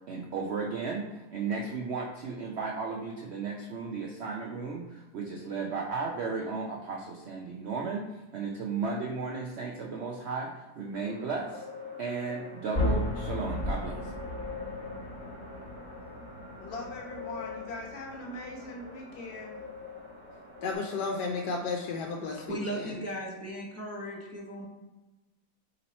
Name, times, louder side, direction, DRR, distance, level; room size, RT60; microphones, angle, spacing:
voice 1, 0.1-11.6 12.0-14.1, right 4 dB, 80° right, -1 dB, 0.6 m, -34 dB
sound 1, 10.9-22.5, left 4 dB, 45° right, 1.2 m, -46 dB
sound 2, 12.7-20.7, left 1 dB, 25° left, 1.3 m, -36 dB
voice 2, 16.6-19.6, left 2 dB, 45° left, -2 dB, 1.1 m, -41 dB
voice 3, 20.6-23.1, left 4 dB, 80° left, 0 dB, 1.2 m, -33 dB
voice 4, 22.5-24.7, right 1 dB, 20° right, -5 dB, 0.4 m, -37 dB
4.2 x 3.1 x 4.1 m, 1.1 s
omnidirectional pair, 1.8 m